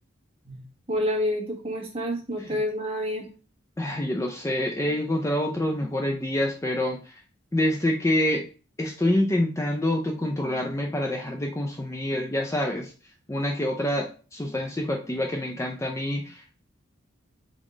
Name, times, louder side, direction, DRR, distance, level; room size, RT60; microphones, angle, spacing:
voice 1, 0.4-3.2, equal, 25° right, -2 dB, 1.3 m, -29 dB
voice 2, 3.8-7.2 7.5-8.5 8.8-12.9 13.3-16.4, left 1 dB, 15° left, 2 dB, 0.4 m, -26 dB
3.6 x 3.6 x 3.7 m, 0.37 s
head